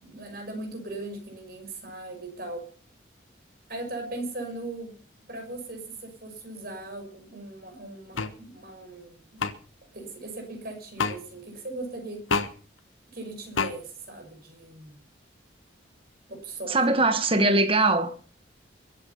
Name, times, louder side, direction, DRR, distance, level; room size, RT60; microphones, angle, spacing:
voice 1, 0.0-2.7 3.7-5.0 5.3-9.5 9.9-12.2 13.1-15.0 16.3-16.9, right 2 dB, 50° right, 6.2 m, -39 dB
sound 1, 8.2-8.3 9.4-9.5 11.0-11.2 12.3-12.5 13.6-13.7, left 4 dB, 90° left, 1.3 m, -26 dB
voice 2, 16.7-18.2, right 2 dB, 30° right, 1.7 m, -21 dB
22.5 x 8.8 x 5.6 m
head